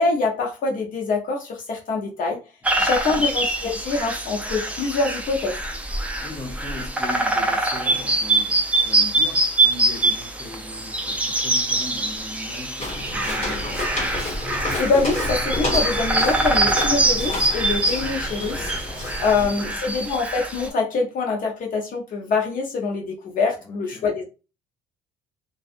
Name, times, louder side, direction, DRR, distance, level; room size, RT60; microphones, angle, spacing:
voice 1, 0.0-2.4 2.8-5.6 14.8-18.7 19.2-24.2, left 4 dB, 55° left, 0.7 m, -24 dB
voice 2, 2.7-3.3 6.2-13.9 19.2-19.8 23.6-24.2, left 3 dB, 20° left, 0.9 m, -39 dB
sound 1, 2.7-20.7, right 2 dB, 10° right, 0.4 m, -24 dB
Walk footsteps, 12.8-19.5, left 1 dB, 40° left, 1.3 m, -29 dB
2.5 x 2.4 x 2.4 m
cardioid pair, 110°, 17 cm